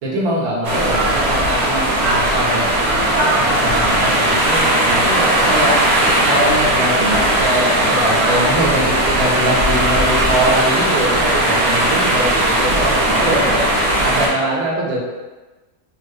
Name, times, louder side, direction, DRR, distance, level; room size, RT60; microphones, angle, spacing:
voice 1, 0.0-5.8 6.3-13.6 14.0-15.0, right 1 dB, 85° right, -5 dB, 1.3 m, -22 dB
sound 1, 0.6-14.3, right 1 dB, 55° right, 0.8 m, -17 dB
3.3 x 2.6 x 2.2 m, 1.2 s
omnidirectional pair, 1.6 m